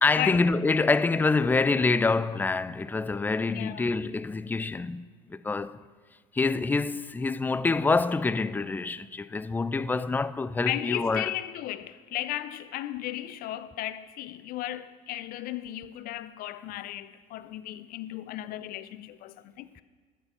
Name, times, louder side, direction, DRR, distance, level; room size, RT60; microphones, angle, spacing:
voice 1, 0.0-5.8 6.3-11.3, left 3 dB, 10° left, 0.3 m, -26 dB
voice 2, 3.4-4.1 10.7-19.8, left 14 dB, 55° left, 0.6 m, -35 dB
12.0 x 8.1 x 4.3 m
supercardioid pair, 90°, 18 cm